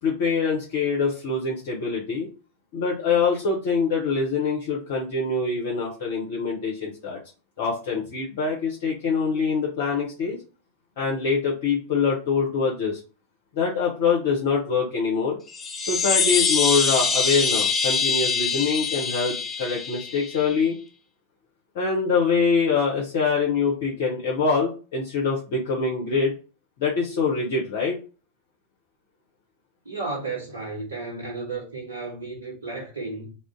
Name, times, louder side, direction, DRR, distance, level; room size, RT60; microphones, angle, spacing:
voice 1, 0.0-2.3 2.7-7.2 7.6-10.4 11.0-13.0 13.5-15.4 15.9-20.8 21.7-26.3 26.8-28.0, left 5 dB, 50° left, 0.7 m, -24 dB
sound 1, 15.5-20.5, left 5 dB, 10° left, 0.5 m, -24 dB
voice 2, 29.8-33.3, right 3 dB, 70° right, 0.7 m, -33 dB
2.4 x 2.0 x 3.7 m
figure-of-eight pair, 90°, 0 cm